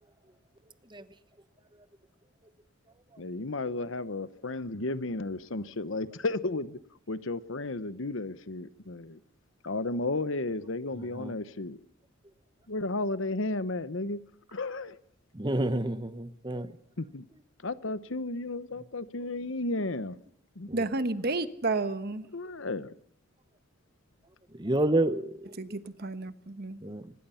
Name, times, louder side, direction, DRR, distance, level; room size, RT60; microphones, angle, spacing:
voice 1, 3.2-6.8 7.1-9.2 9.6-11.8 12.7-14.2 14.5-15.0 17.0-17.2 17.6-20.2 20.6-20.7 22.3-22.9, left 2 dB, 65° left, 14 dB, 1.0 m, -33 dB
voice 2, 10.9-11.3 15.3-16.8 20.7-20.8 24.5-25.8 26.8-27.1, right 1 dB, 20° right, 12 dB, 1.1 m, -30 dB
voice 3, 20.7-22.2 25.6-26.8, right 3 dB, 50° right, 11 dB, 1.2 m, -31 dB
24.5 x 21.0 x 5.8 m, 0.64 s
head